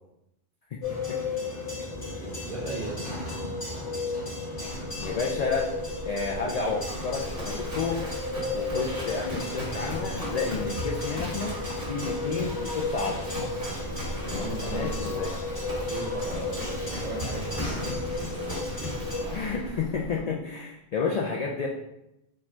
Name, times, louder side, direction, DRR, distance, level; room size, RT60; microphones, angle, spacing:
sound 1, 0.8-19.2, left 3 dB, 85° left, 2.0 m, -34 dB
voice 1, 2.2-3.3 14.3-15.3 15.6-18.7, right 2 dB, 30° right, -7 dB, 1.4 m, -38 dB
Livestock farm animals working animals, 4.7-20.2, equal, 55° right, 1.7 m, -37 dB
voice 2, 5.0-5.7 6.1-8.0 8.5-11.6 11.9-13.2 14.6-15.3 19.3-21.7, left 4 dB, 55° left, -1 dB, 0.4 m, -31 dB
4.5 x 2.4 x 4.4 m, 0.88 s
omnidirectional pair, 1.1 m